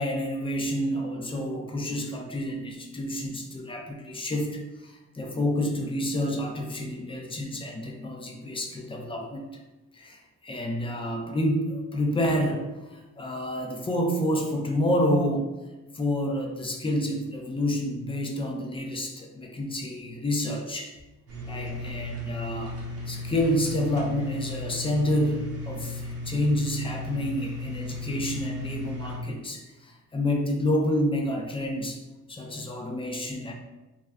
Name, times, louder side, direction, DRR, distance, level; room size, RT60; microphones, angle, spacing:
voice 1, 0.0-9.5 9.9-15.6 15.9-20.9 21.5-22.7 23.1-32.0 32.3-33.5, left 1 dB, 20° left, 1 dB, 0.5 m, -29 dB
sound 1, 21.3-29.2, left 2 dB, 50° right, 0.9 m, -35 dB
2.3 x 2.2 x 3.4 m, 1.1 s
cardioid pair, 90°, 30 cm